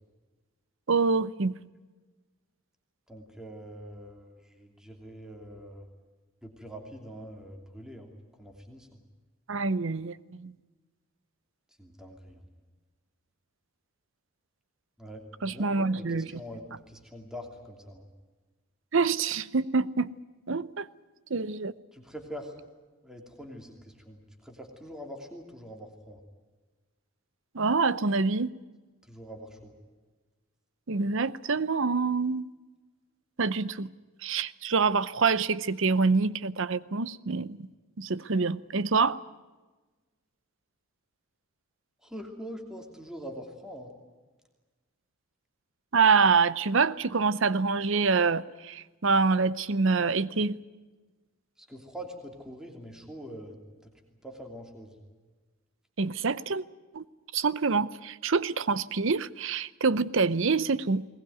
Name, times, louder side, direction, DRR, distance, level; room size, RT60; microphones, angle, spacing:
voice 1, 0.9-1.6 9.5-10.5 15.4-16.4 18.9-20.1 20.5-20.9 21.3-21.7 27.5-28.5 30.9-32.5 33.4-33.9 34.2-37.7 38.0-39.2 45.9-50.6 56.0-56.6 56.9-57.0 57.3-61.1, right 4 dB, 60° right, 0.7 m, -26 dB
voice 2, 3.1-5.8 6.4-8.1 8.4-8.9 11.8-12.4 15.0-18.1 21.9-22.5 23.0-26.2 29.1-29.7 42.0-43.9 51.6-53.5 53.8-53.9 54.2-54.9, equal, 5° right, 2.8 m, -44 dB
21.0 x 19.5 x 9.3 m
head